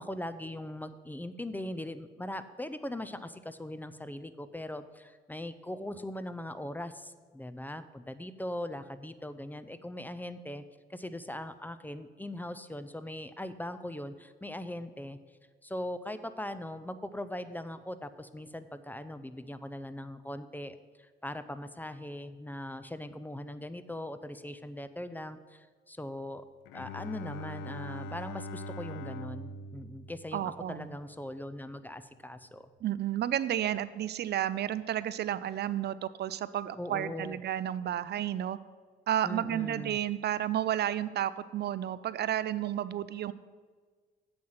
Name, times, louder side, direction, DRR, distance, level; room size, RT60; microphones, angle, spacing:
voice 1, 0.0-10.6 10.9-15.2 15.6-26.4 26.7-32.7 36.7-37.4 39.2-40.0, left 1 dB, 10° left, 12 dB, 0.5 m, -40 dB
Bowed string instrument, 26.7-31.2, equal, 90° left, 0.5 m, -42 dB
voice 2, 30.3-30.9 32.8-38.6 39.1-43.3, right 11 dB, 55° right, 16 dB, 0.4 m, -32 dB
7.8 x 5.6 x 7.7 m, 1.5 s
cardioid pair, 90°, 20 cm